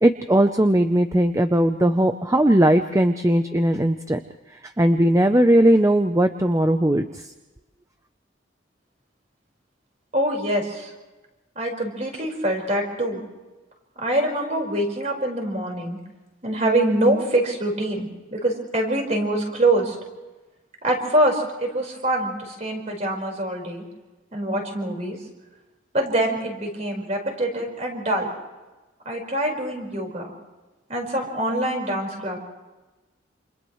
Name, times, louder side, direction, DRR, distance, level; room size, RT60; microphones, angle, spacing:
voice 1, 0.0-4.2 4.6-7.3, right 1 dB, 15° right, 7 dB, 0.6 m, -19 dB
voice 2, 10.1-10.9 11.5-13.2 14.0-16.0 16.4-20.0 20.8-23.8 24.3-25.2 25.9-28.3 29.0-30.3 30.9-32.4, right 1 dB, 35° right, 1 dB, 5.0 m, -24 dB
29.0 x 28.0 x 3.2 m, 1.1 s
head